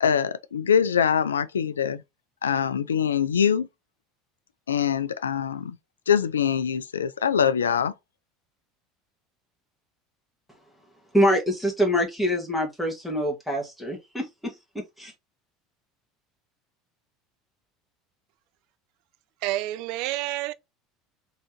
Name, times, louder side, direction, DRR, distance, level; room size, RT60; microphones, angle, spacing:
voice 1, 0.0-2.0 2.4-3.7 4.7-5.8 6.1-7.9, left 7 dB, 85° left, 0.4 m, -23 dB
voice 2, 11.1-14.5 15.0-15.1, equal, ahead, 2.0 m, -25 dB
voice 3, 19.4-20.5, right 16 dB, 60° right, 0.4 m, -29 dB
4.2 x 3.8 x 3.0 m
figure-of-eight pair, 70°, 0 cm